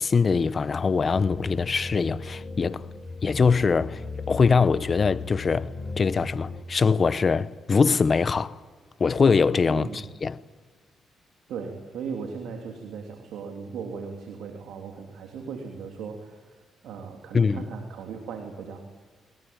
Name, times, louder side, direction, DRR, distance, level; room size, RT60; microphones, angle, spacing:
voice 1, 0.0-2.9 3.2-4.0 4.3-5.7 6.0-8.6 9.0-10.4 17.3-17.7, left 5 dB, 40° left, 0.9 m, -22 dB
sound 1, 1.1-6.6, left 4 dB, 15° left, 6.2 m, -37 dB
voice 2, 11.5-16.4 16.8-18.8, right 5 dB, 80° right, 3.2 m, -37 dB
22.0 x 20.5 x 8.8 m
cardioid pair, 75°, 0 cm